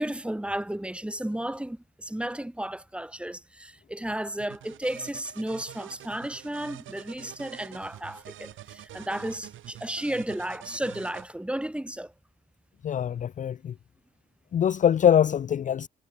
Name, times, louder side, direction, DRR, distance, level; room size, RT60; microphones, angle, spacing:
voice 1, 0.0-12.1, right 1 dB, 5° right, 5.8 m, -33 dB
sound 1, 4.4-11.2, right 13 dB, 80° right, 4.4 m, -46 dB
voice 2, 12.8-13.7 14.5-15.9, left 9 dB, 40° left, 0.5 m, -23 dB
cardioid pair, 90°, 20 cm